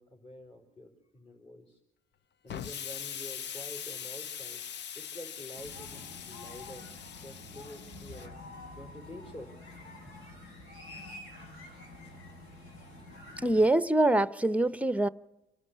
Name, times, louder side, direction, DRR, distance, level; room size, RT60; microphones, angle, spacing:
voice 1, 0.0-1.8 2.4-4.6 4.9-6.9 7.2-8.4 8.7-9.5 10.1-10.2 10.5-10.6, left 1 dB, 35° left, 4.8 m, -48 dB
Explosion, 2.5-8.3, left 8 dB, 60° left, 0.7 m, -42 dB
sound 1, 5.6-13.7, left 2 dB, 85° left, 5.5 m, -48 dB
voice 2, 13.4-15.1, right 1 dB, 5° right, 0.8 m, -24 dB
28.0 x 11.5 x 9.8 m
cardioid pair, 90°, 20 cm